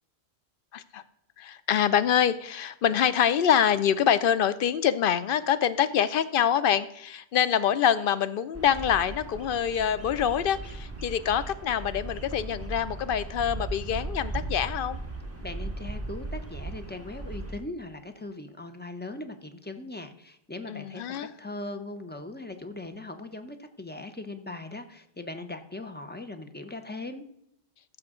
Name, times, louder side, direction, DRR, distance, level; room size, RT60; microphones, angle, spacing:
voice 1, 0.7-1.0 1.4-15.0 20.7-21.3, left 9 dB, 65° left, 14 dB, 0.7 m, -25 dB
Bird vocalization bird call bird song, 8.5-17.5, right 2 dB, 15° right, 1.5 m, -37 dB
voice 2, 15.4-27.2, left 2 dB, 15° left, 7 dB, 0.5 m, -39 dB
14.5 x 6.4 x 3.6 m, 0.76 s
omnidirectional pair, 1.1 m